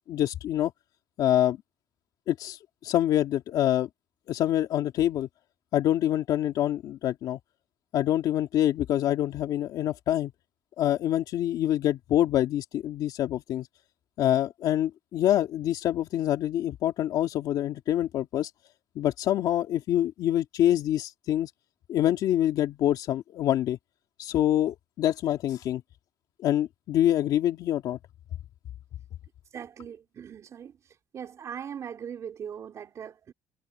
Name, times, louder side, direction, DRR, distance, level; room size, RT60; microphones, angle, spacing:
voice 1, 0.1-0.7 1.2-1.6 2.3-3.9 4.3-5.3 5.7-7.4 7.9-10.3 10.8-13.7 14.2-18.5 19.0-21.5 21.9-23.8 24.2-25.8 26.4-28.0, left 12 dB, 70° left, 2.5 m, -26 dB
voice 2, 29.5-30.8 31.1-33.3, right 8 dB, 45° right, 3.2 m, -40 dB
cardioid pair, 130°, 7 cm